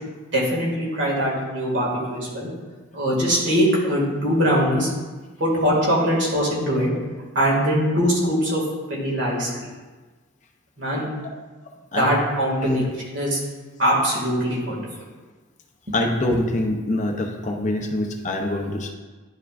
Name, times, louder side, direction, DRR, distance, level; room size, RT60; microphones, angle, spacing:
voice 1, 0.3-2.5 2.9-4.9 5.4-6.9 7.4-8.6 8.9-9.5 10.8-11.1 12.0-12.9 13.1-13.4 13.8-14.8, equal, 60° right, -4 dB, 2.0 m, -22 dB
voice 2, 15.9-18.9, left 1 dB, 35° left, 2 dB, 0.6 m, -24 dB
11.0 x 4.7 x 2.5 m, 1.3 s
head